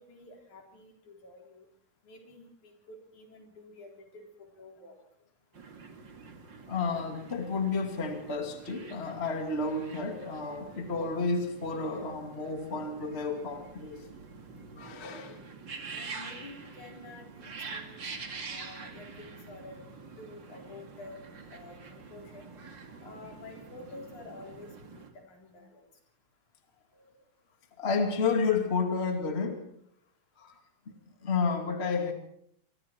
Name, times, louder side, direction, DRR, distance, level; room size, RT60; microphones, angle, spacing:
voice 1, 0.0-1.7 2.0-4.9 15.1-15.5 15.9-18.0 18.4-19.8 20.2-21.2 21.5-22.5 23.0-25.8, left 2 dB, 75° left, 5.3 m, -49 dB
sound 1, 5.5-25.1, right 4 dB, 40° right, 2.8 m, -46 dB
voice 2, 6.7-14.0 14.8-15.3 27.0-27.1 27.8-29.6 30.4-30.6 30.9-31.0 31.2-32.1, left 4 dB, 20° left, 2.4 m, -31 dB
26.0 x 24.0 x 4.5 m
omnidirectional pair, 3.4 m